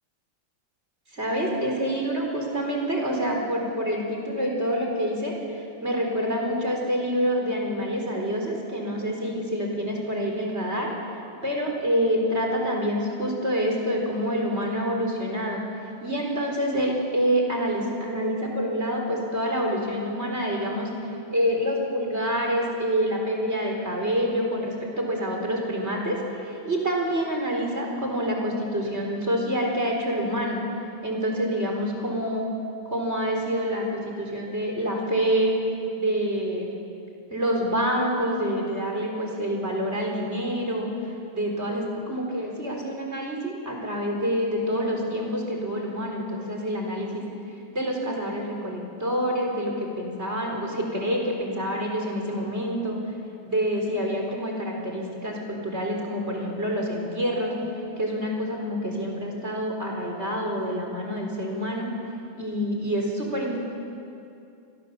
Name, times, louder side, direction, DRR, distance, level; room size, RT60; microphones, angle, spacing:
voice 1, 1.1-10.9 11.4-15.6 16.0-20.9 21.3-30.6 31.0-32.5 32.9-33.8 34.2-35.6 35.9-36.7 37.3-40.9 41.3-47.2 47.7-53.0 53.4-57.5 58.0-61.9 62.4-63.6, equal, 15° right, 0 dB, 4.0 m, -27 dB
27.5 x 22.0 x 7.5 m, 2.6 s
omnidirectional pair, 5.0 m